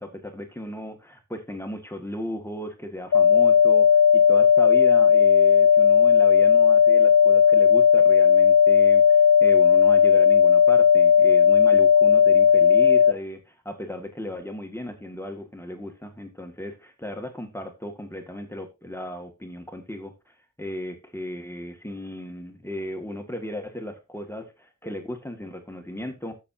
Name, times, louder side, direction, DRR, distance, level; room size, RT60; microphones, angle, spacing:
voice 1, 0.0-26.3, left 1 dB, 10° left, 4 dB, 1.9 m, -36 dB
sound 1, 3.1-13.1, left 7 dB, 70° left, 0.7 m, -16 dB
12.5 x 7.4 x 2.7 m, 0.25 s
wide cardioid pair, 95°, 31 cm